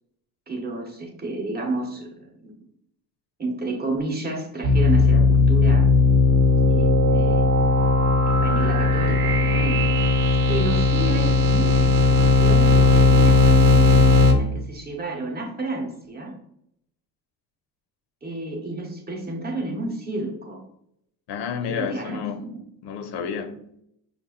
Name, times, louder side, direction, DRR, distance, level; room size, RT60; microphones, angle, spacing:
voice 1, 0.5-2.5 3.4-5.9 6.7-7.5 8.4-10.0 10.5-16.3 18.2-20.6 21.7-22.6, right 2 dB, 25° right, 0.8 m, -31 dB
sound 1, 4.6-14.3, left 3 dB, 55° right, 0.8 m, -17 dB
voice 2, 21.3-22.5 22.8-23.6, left 7 dB, 80° left, 0.7 m, -30 dB
5.6 x 2.5 x 3.6 m
cardioid pair, 170°, 41 cm